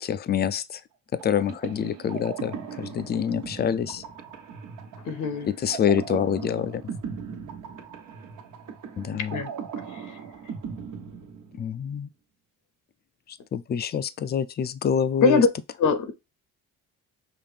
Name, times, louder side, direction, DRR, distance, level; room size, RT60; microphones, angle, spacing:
voice 1, 0.0-0.8 1.1-4.0 5.4-6.8 9.0-9.4 11.6-12.1 13.5-15.5, left 8 dB, 30° left, 0.4 m, -26 dB
sound 1, 1.2-11.9, right 6 dB, 70° right, 1.3 m, -39 dB
voice 2, 5.1-5.5 9.3-9.5 15.2-15.5 15.8-16.1, left 4 dB, 65° left, 0.7 m, -21 dB
5.7 x 2.5 x 3.4 m
cardioid pair, 105°, 32 cm